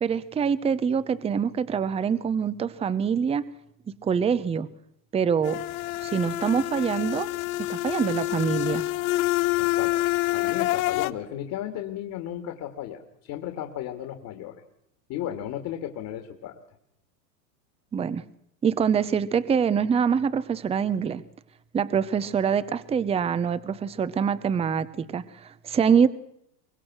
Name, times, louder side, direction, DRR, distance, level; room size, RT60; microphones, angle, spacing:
voice 1, 0.0-3.4 4.0-4.7 5.1-5.6 6.0-7.3 7.7-8.8 17.9-18.2 18.6-21.2 21.7-26.1, right 7 dB, 10° right, 16 dB, 0.7 m, -25 dB
sound 1, 5.4-11.1, left 18 dB, 60° left, 1.0 m, -27 dB
voice 2, 9.6-10.0 10.3-14.6 15.1-16.6, left 11 dB, 45° left, 7 dB, 2.2 m, -35 dB
23.5 x 20.5 x 6.2 m, 0.77 s
hypercardioid pair, 115°, 49 cm